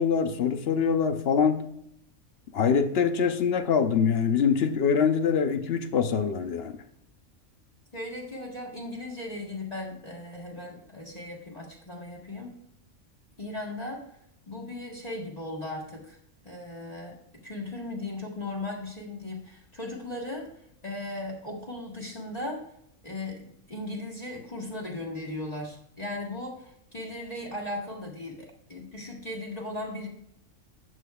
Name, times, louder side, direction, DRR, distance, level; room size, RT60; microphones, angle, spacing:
voice 1, 0.0-1.6 2.5-6.8, left 6 dB, 55° left, 9 dB, 0.8 m, -24 dB
voice 2, 7.9-12.5 13.4-14.0 14.5-16.2 16.4-20.5 20.8-22.6 23.0-30.1, left 2 dB, 30° left, -2 dB, 1.6 m, -37 dB
12.0 x 8.1 x 2.3 m, 0.73 s
omnidirectional pair, 1.4 m